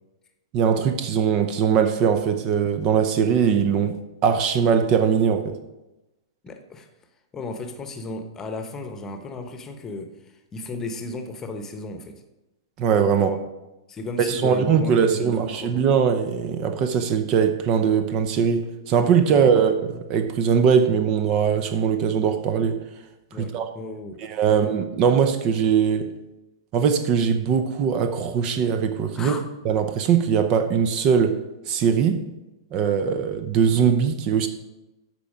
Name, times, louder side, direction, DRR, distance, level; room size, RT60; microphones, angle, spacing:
voice 1, 0.5-5.6 12.8-13.3 14.2-22.8 23.4-23.7 24.2-26.1 26.7-29.3 29.6-31.4 31.7-32.2 32.7-34.5, right 7 dB, 35° right, 8 dB, 0.8 m, -21 dB
voice 2, 6.4-6.9 7.3-10.1 10.5-12.2 13.1-13.5 13.9-15.9 19.3-19.4 23.3-24.2 24.5-24.8 29.1-29.4, left 2 dB, 20° left, 6 dB, 1.0 m, -35 dB
13.0 x 4.5 x 5.1 m, 1.0 s
figure-of-eight pair, 105°, 2 cm